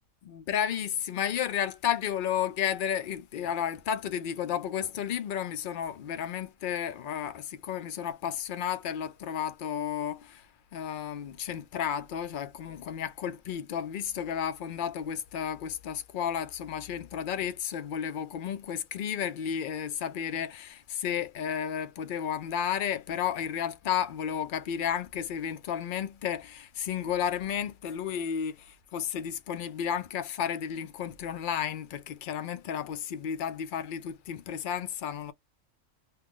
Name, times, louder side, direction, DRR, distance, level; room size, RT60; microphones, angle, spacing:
voice 1, 0.2-10.5 10.7-35.3, left 9 dB, 60° left, 0.5 m, -32 dB
2.8 x 2.3 x 3.5 m
omnidirectional pair, 1.3 m